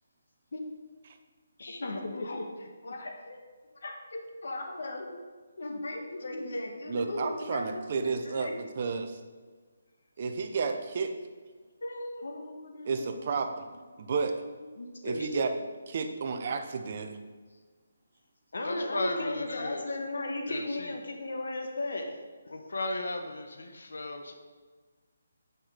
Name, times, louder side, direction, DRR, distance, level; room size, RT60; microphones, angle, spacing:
voice 1, 1.6-3.4 3.7-5.2 5.6-8.6 11.8-13.5 14.1-14.3 14.6-15.5 18.5-22.1, left 2 dB, 65° left, 3 dB, 1.4 m, -36 dB
voice 2, 6.9-9.2 10.2-11.1 12.8-13.7 14.0-14.3 15.0-15.5 15.9-17.2, right 5 dB, 35° right, 6 dB, 0.7 m, -32 dB
voice 3, 18.6-20.0 20.5-21.0 22.5-24.3, left 2 dB, 90° left, 4 dB, 1.2 m, -35 dB
9.1 x 6.0 x 5.0 m, 1.5 s
hypercardioid pair, 175°, 0 cm